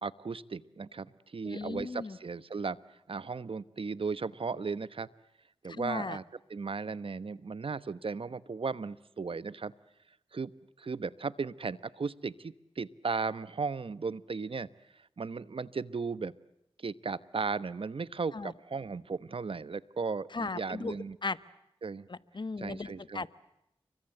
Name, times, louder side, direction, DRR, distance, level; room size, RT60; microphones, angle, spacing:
voice 1, 0.0-2.8 3.1-5.1 5.6-6.2 6.5-9.7 10.3-10.5 10.8-14.7 15.2-16.3 16.8-21.2 21.8-22.1 22.6-23.3, right 4 dB, 60° right, 16 dB, 1.1 m, -36 dB
voice 2, 1.4-2.2 5.7-6.2 18.3-18.5 20.3-21.0 21.2-21.4 22.1-23.3, left 3 dB, 50° left, 15 dB, 1.3 m, -37 dB
29.5 x 24.0 x 7.9 m, 0.81 s
cardioid pair, 45°, 10 cm